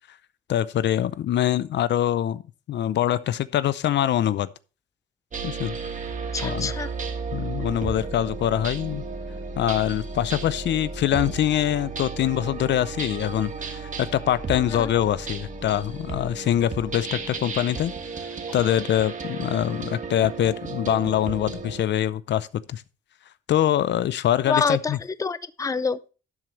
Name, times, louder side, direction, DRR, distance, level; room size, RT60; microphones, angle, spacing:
voice 1, 0.5-2.4 2.7-4.5 5.4-5.8 6.4-6.7 7.3-9.0 9.6-17.9 18.5-22.8 23.5-25.0, left 11 dB, 65° left, 0.6 m, -24 dB
sound 1, 5.3-21.8, right 4 dB, 40° right, 1.6 m, -34 dB
voice 2, 6.3-6.9 14.5-14.9 24.5-26.0, left 5 dB, 15° left, 0.5 m, -26 dB
12.0 x 7.6 x 3.1 m
cardioid pair, 90°, 20 cm